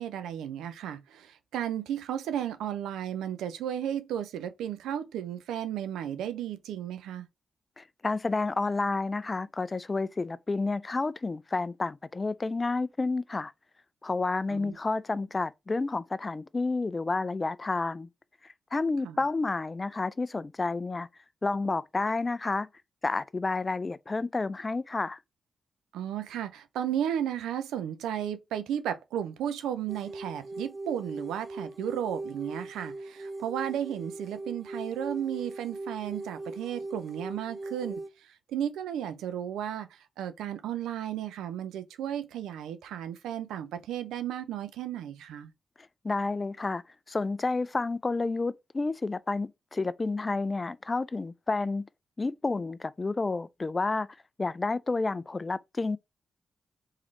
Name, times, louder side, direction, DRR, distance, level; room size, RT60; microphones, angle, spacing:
voice 1, 0.0-7.3 14.5-14.8 19.0-19.2 25.9-45.5, right 10 dB, 85° right, 0.5 m, -34 dB
voice 2, 7.8-13.5 14.0-18.1 18.4-21.1 21.4-22.7 23.0-25.2 46.0-51.9 52.2-54.1 54.4-56.0, left 3 dB, 35° left, 0.4 m, -30 dB
sound 1, 29.9-38.1, right 2 dB, 25° right, 0.6 m, -40 dB
3.6 x 3.2 x 3.2 m
supercardioid pair, 45°, 0 cm